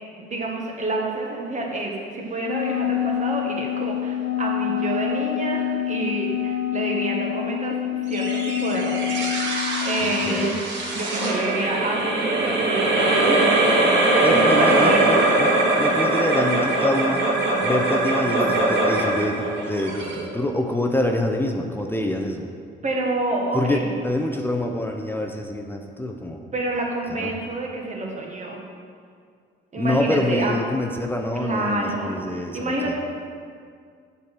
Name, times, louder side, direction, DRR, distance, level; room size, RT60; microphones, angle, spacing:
voice 1, 0.1-13.6 13.9-15.2 22.8-24.0 26.5-28.6 29.7-30.5 31.4-32.9, right 2 dB, 35° right, -1 dB, 1.4 m, -28 dB
Wind instrument woodwind instrument, 2.4-10.5, left 11 dB, 75° left, 1.0 m, -26 dB
sound 1, 8.1-20.8, right 2 dB, 70° right, 1.5 m, -21 dB
voice 2, 10.0-10.6 14.2-17.2 17.6-22.5 23.5-26.4 27.2-27.4 29.8-32.9, left 1 dB, 10° left, 2 dB, 0.6 m, -26 dB
7.3 x 4.1 x 6.1 m, 2.2 s
cardioid pair, 90°, 20 cm